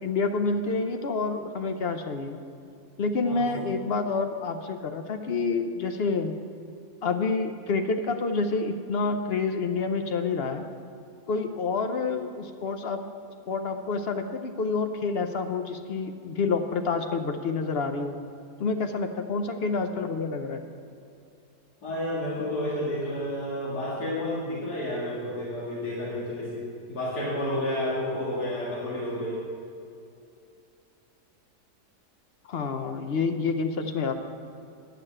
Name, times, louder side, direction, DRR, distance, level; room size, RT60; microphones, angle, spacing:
voice 1, 0.0-2.4 3.0-6.3 7.0-10.6 11.3-13.0 13.5-18.2 18.6-20.6 32.5-34.1, left 4 dB, 60° left, 6 dB, 0.6 m, -28 dB
voice 2, 21.8-29.4, left 1 dB, 75° left, -7 dB, 2.6 m, -31 dB
10.5 x 6.0 x 8.8 m, 2.6 s
omnidirectional pair, 1.7 m